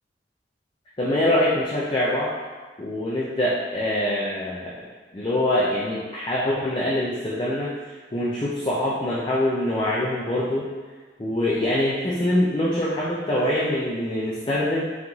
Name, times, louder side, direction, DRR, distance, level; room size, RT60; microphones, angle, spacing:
voice 1, 1.0-2.3 2.8-4.9 5.1-7.7 8.1-10.7 11.2-14.9, left 1 dB, 25° left, -5 dB, 0.4 m, -24 dB
3.9 x 3.5 x 3.0 m, 1.4 s
head